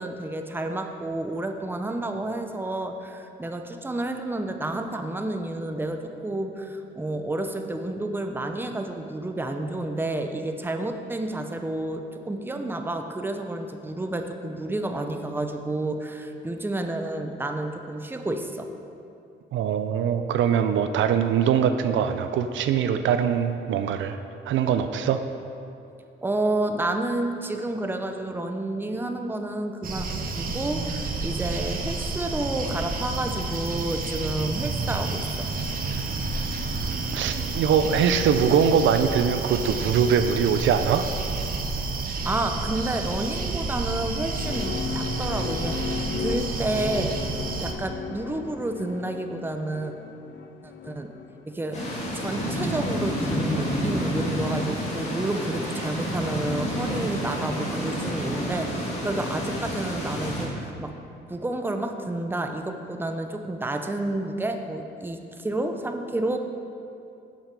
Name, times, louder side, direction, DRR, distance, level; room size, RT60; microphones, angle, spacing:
voice 1, 0.0-18.7 26.2-35.5 42.2-47.2 47.6-49.9 50.6-51.1 51.4-51.8 52.1-61.0 61.3-66.4, right 2 dB, 10° right, 5 dB, 0.7 m, -30 dB
voice 2, 19.5-24.2 24.5-25.2 36.0-36.1 37.1-41.1, right 7 dB, 75° right, 9 dB, 0.5 m, -22 dB
sound 1, 29.8-47.7, right 3 dB, 45° right, 1.0 m, -30 dB
sound 2, 44.0-52.6, left 7 dB, 65° left, 0.6 m, -36 dB
sound 3, 51.7-60.5, equal, 35° left, 2.3 m, -29 dB
7.4 x 7.3 x 5.2 m, 2.6 s
cardioid pair, 90°, 20 cm